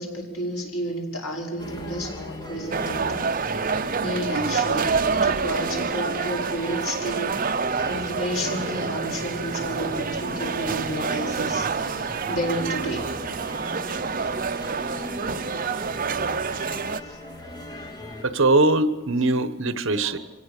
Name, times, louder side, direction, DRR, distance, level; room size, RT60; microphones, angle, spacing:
voice 1, 0.0-3.4 4.0-7.4 7.9-13.2 17.1-17.2 19.9-20.2, equal, 80° left, -1 dB, 5.6 m, -31 dB
sound 1, 1.6-18.2, left 1 dB, 20° left, 2.7 m, -38 dB
sound 2, 2.7-17.0, right 5 dB, 40° right, 0.7 m, -27 dB
voice 2, 18.2-20.2, right 2 dB, 60° right, 12 dB, 1.2 m, -21 dB
24.5 x 17.5 x 6.8 m, 1.2 s
head